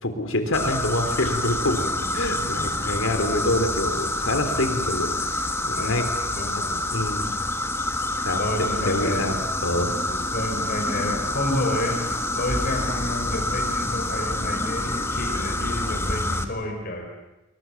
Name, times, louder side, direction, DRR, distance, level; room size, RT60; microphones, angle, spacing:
voice 1, 0.0-1.8 2.1-6.1 6.5-6.6 6.9-7.3 7.9-9.9, left 1 dB, 85° left, 8 dB, 3.6 m, -26 dB
sound 1, 0.5-16.4, left 1 dB, 15° left, 1.6 m, -27 dB
voice 2, 1.7-2.2 5.7-6.8 8.4-9.3 10.1-17.0, left 1 dB, 50° left, 3 dB, 4.9 m, -30 dB
27.0 x 23.0 x 7.3 m, 1.0 s
head